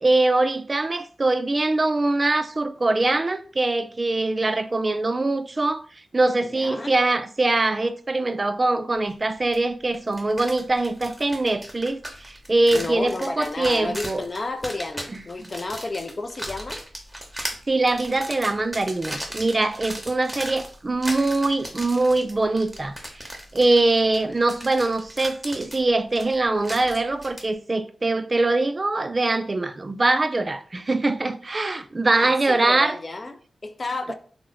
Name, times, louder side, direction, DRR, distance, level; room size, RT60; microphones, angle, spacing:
voice 1, 0.0-5.8 6.1-14.2 15.4-15.5 17.7-23.2 23.5-33.0, right 2 dB, 40° right, 0.3 m, -23 dB
voice 2, 6.5-6.9 12.7-16.8 32.2-34.1, left 2 dB, 45° left, 0.4 m, -32 dB
sound 1, 9.5-9.6 9.9-27.5, equal, 10° right, 0.8 m, -37 dB
3.0 x 2.0 x 3.8 m
cardioid pair, 50°, 0 cm